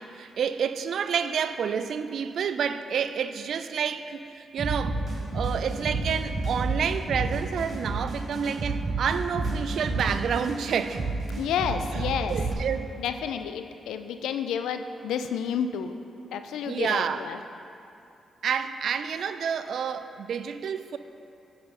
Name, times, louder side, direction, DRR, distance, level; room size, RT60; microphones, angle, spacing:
voice 1, 0.0-5.0 5.3-11.0 11.9-12.0 12.3-12.9 16.7-17.2 18.4-21.0, right 7 dB, 70° right, 11 dB, 0.3 m, -29 dB
sound 1, 4.6-12.5, right 3 dB, 45° right, 1.7 m, -30 dB
voice 2, 11.4-12.4 13.0-15.9 16.3-17.4, left 8 dB, 90° left, 9 dB, 0.3 m, -30 dB
6.8 x 6.5 x 4.2 m, 2.7 s
cardioid pair, 60°, 0 cm